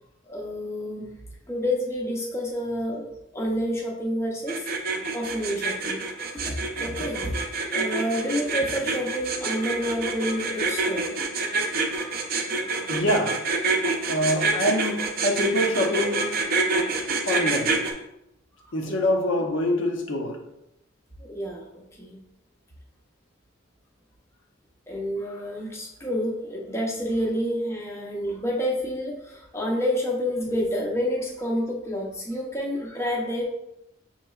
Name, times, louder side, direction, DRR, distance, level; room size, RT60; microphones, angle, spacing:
voice 1, 0.3-1.1 1.5-3.0 3.3-4.6 5.1-6.0 6.3-7.5 7.7-11.2 11.6-12.1 21.2-22.2 24.9-33.4, equal, 15° left, -2 dB, 0.5 m, -29 dB
sound 1, 4.5-17.9, right 3 dB, 45° right, 0.5 m, -26 dB
voice 2, 12.9-13.4 14.1-16.4 17.3-17.8 18.7-20.4, left 1 dB, 65° left, 2 dB, 0.7 m, -25 dB
6.3 x 3.0 x 2.3 m, 0.85 s
head